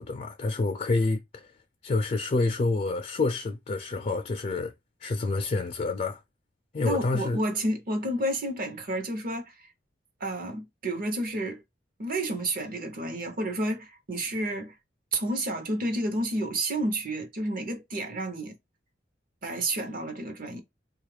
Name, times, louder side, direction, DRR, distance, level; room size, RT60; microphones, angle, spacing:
voice 1, 0.0-1.5 1.8-4.7 5.0-6.2 6.7-7.4, left 3 dB, 40° left, 0.4 m, -28 dB
voice 2, 6.8-9.7 10.2-11.6 12.0-14.8 15.1-18.6 19.4-20.6, right 1 dB, 50° right, 0.8 m, -30 dB
3.7 x 2.4 x 3.2 m
head